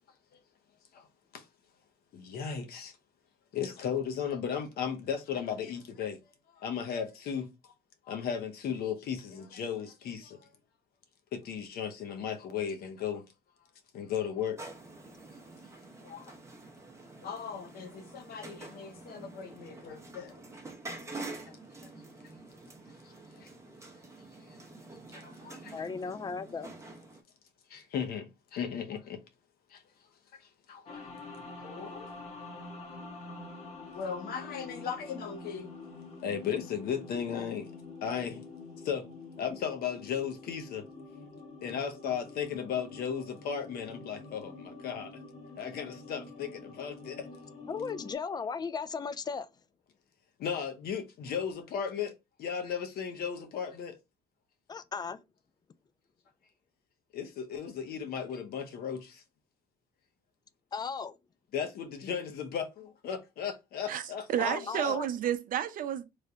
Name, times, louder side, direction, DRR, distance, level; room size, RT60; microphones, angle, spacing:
voice 1, 2.1-3.0 3.5-6.2 6.5-7.7 8.1-10.5 11.3-13.3 13.9-14.6 16.0-16.3 17.2-20.4 21.5-21.6 21.8-21.9 23.0-23.5 25.1-25.7 27.7-29.2 29.7-29.8 30.3-31.0 31.6-32.1 33.9-35.7 36.2-37.7 38.0-38.4 38.8-39.1 39.4-40.9 41.6-45.1 45.6-47.3 50.4-52.1 52.4-54.0 57.1-59.2 61.5-65.0, left 7 dB, 65° left, 0.8 m, -36 dB
sound 1, 14.6-27.2, right 2 dB, 15° right, 0.7 m, -47 dB
voice 2, 25.7-26.7 47.7-49.5 54.7-55.2 60.7-61.2 64.4-65.1, left 5 dB, 25° left, 0.3 m, -36 dB
sound 2, 30.9-48.2, left 3 dB, 40° left, 1.0 m, -47 dB
voice 3, 63.9-66.0, right 10 dB, 55° right, 0.5 m, -31 dB
3.2 x 2.2 x 3.8 m
cardioid pair, 110°, 17 cm